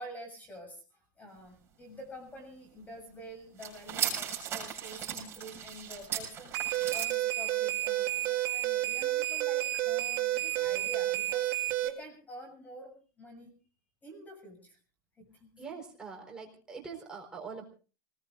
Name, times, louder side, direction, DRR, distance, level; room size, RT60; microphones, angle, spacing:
voice 1, 0.0-6.6 6.9-13.5 14.0-14.8 15.2-15.5, equal, 15° left, 5 dB, 7.2 m, -48 dB
sound 1, 3.6-7.1, right 9 dB, 25° right, 6.9 m, -36 dB
sound 2, 6.5-11.9, right 16 dB, 40° right, 2.2 m, -30 dB
voice 2, 15.6-17.6, right 5 dB, 5° right, -1 dB, 4.3 m, -43 dB
27.0 x 20.5 x 2.6 m, 0.36 s
supercardioid pair, 155°, 10 cm